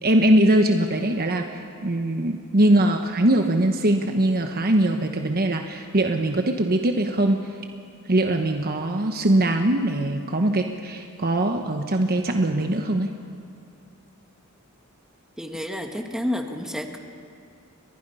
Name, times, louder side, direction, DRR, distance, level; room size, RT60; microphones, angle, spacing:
voice 1, 0.0-1.4 1.8-7.4 8.1-13.1, right 1 dB, 45° right, 5 dB, 1.1 m, -21 dB
voice 2, 15.4-17.0, left 1 dB, 5° right, 3 dB, 1.8 m, -30 dB
30.0 x 24.0 x 5.6 m, 2.4 s
head